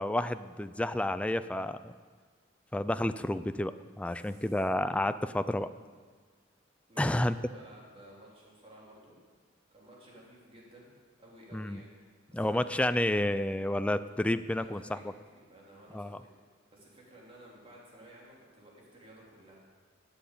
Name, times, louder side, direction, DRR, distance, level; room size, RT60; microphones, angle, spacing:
voice 1, 0.0-1.9 2.7-5.7 7.0-7.4 11.5-11.8 12.3-15.0 15.9-16.2, left 1 dB, 5° left, 12 dB, 0.3 m, -30 dB
voice 2, 4.1-4.6 6.9-9.2 9.7-10.9 11.2-12.9 14.5-16.3 16.7-19.6, right 1 dB, 30° right, -4 dB, 3.6 m, -55 dB
12.5 x 8.0 x 8.4 m, 1.5 s
head